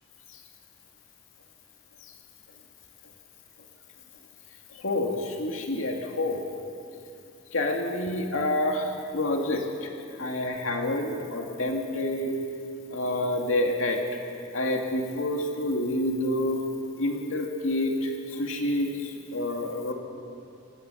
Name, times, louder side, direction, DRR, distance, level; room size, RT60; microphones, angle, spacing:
voice 1, 4.7-6.4 7.5-9.9 10.2-12.4 12.9-14.0 14.5-16.6 17.0-19.9, left 1 dB, 80° left, 2 dB, 2.2 m, -28 dB
27.0 x 16.5 x 6.9 m, 2.6 s
head